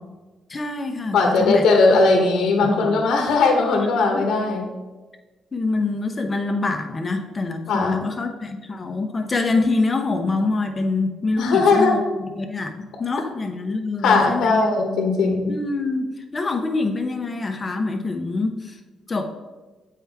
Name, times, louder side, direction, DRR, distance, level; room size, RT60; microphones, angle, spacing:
voice 1, 0.5-1.6 2.6-3.0 4.1-4.2 5.5-14.7 15.5-18.8 19.1-19.2, left 3 dB, 30° left, 6 dB, 0.8 m, -25 dB
voice 2, 1.1-4.7 7.7-7.9 11.4-12.0 14.0-15.5, left 3 dB, 80° left, 2 dB, 1.0 m, -18 dB
7.9 x 4.7 x 3.5 m, 1.2 s
cardioid pair, 90°, 0 cm